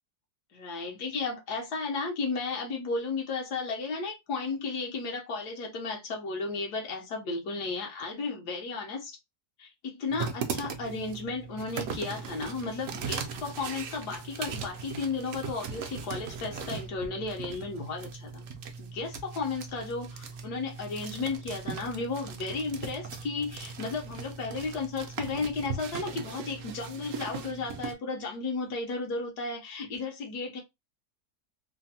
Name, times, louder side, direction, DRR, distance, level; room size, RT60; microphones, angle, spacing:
voice 1, 0.5-9.2 9.6-18.5 18.8-30.6, left 4 dB, 80° left, 1.3 m, -34 dB
sound 1, 10.1-27.9, right 5 dB, 70° right, 0.8 m, -39 dB
3.4 x 2.0 x 2.6 m
omnidirectional pair, 1.7 m